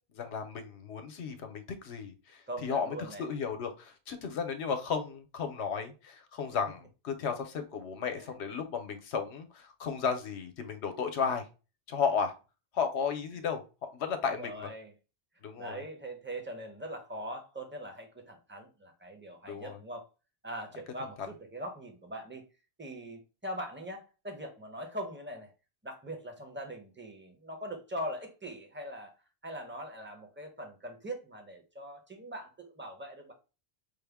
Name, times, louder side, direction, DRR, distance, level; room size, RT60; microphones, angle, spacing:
voice 1, 0.1-11.5 11.9-12.3 12.7-14.7 15.4-15.8 19.5-19.8, left 6 dB, 80° left, 1.0 m, -34 dB
voice 2, 2.5-3.2 8.2-8.4 14.3-14.9 15.6-20.1 20.4-22.4 22.8-25.5 25.8-29.1 29.4-33.3, right 1 dB, 10° right, 0.7 m, -41 dB
5.1 x 2.1 x 3.4 m
omnidirectional pair, 1.1 m